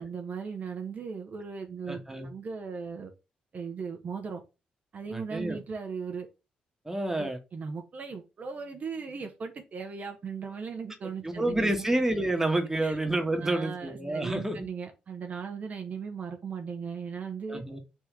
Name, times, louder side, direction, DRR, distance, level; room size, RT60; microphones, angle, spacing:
voice 1, 0.0-3.1 3.5-4.4 4.9-6.3 7.2-11.9 12.8-13.0 13.4-17.6, right 5 dB, 50° right, 0.8 m, -38 dB
voice 2, 1.9-2.3 5.1-5.6 6.8-7.4 11.2-14.7 17.5-17.8, right 1 dB, 10° right, 1.3 m, -29 dB
3.6 x 3.0 x 4.6 m
hypercardioid pair, 45°, 3 cm